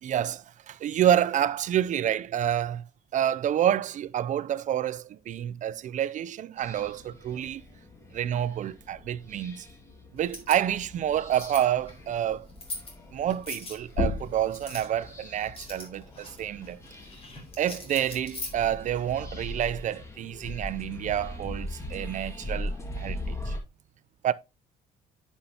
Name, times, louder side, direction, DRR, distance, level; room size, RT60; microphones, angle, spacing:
voice 1, 0.0-2.8 3.1-7.6 8.1-9.7 10.1-12.5 13.1-16.8 17.6-23.6 24.2-24.3, right 10 dB, 50° right, 0.4 m, -28 dB
sound 1, 6.6-23.6, left 1 dB, 15° left, 2.0 m, -41 dB
sound 2, 10.2-19.1, left 2 dB, 35° left, 3.7 m, -43 dB
sound 3, 13.9-19.1 19.5-21.3, left 3 dB, 60° left, 3.6 m, -38 dB
10.0 x 5.7 x 2.8 m
cardioid pair, 110°, 17 cm